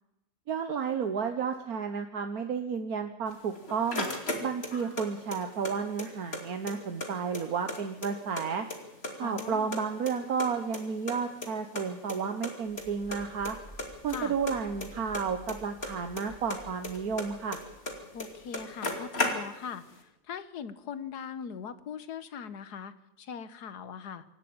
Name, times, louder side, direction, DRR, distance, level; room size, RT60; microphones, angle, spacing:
voice 1, 0.5-4.1 4.4-8.6 9.2-13.6 14.0-17.6, right 6 dB, 70° right, 6 dB, 1.6 m, -32 dB
sound 1, 3.3-5.0 5.3-6.4 6.7-6.8 7.0-8.4 8.7-9.4 9.7-11.2 11.4-11.5 11.8-11.9 12.1-12.2 12.4-12.8 13.1-13.5 13.8-16.2 16.5-17.9 18.2-18.3 18.5-19.8, left 2 dB, 40° left, 2.9 m, -34 dB
voice 2, 9.2-9.7 14.1-14.4 18.1-24.2, left 7 dB, 85° left, 13 dB, 1.7 m, -40 dB
sound 2, 12.7-19.4, equal, 10° left, 6.0 m, -53 dB
26.0 x 12.0 x 8.8 m, 0.95 s
omnidirectional pair, 1.7 m